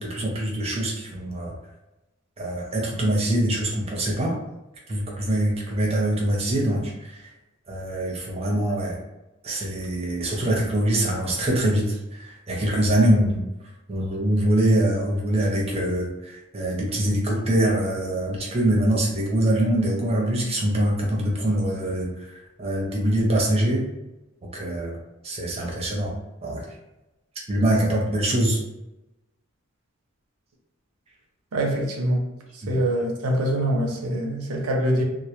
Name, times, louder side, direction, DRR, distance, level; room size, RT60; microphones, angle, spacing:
voice 1, 0.0-1.5 2.4-4.4 4.9-7.2 7.7-9.0 9.4-13.4 13.9-23.9 24.5-25.0 25.2-26.2 26.4-26.6 27.5-28.6 32.6-32.8, right 1 dB, 25° right, -2 dB, 0.5 m, -24 dB
voice 2, 31.5-32.2 32.5-35.0, right 1 dB, 75° right, 0 dB, 0.5 m, -24 dB
2.1 x 2.0 x 2.9 m, 0.98 s
head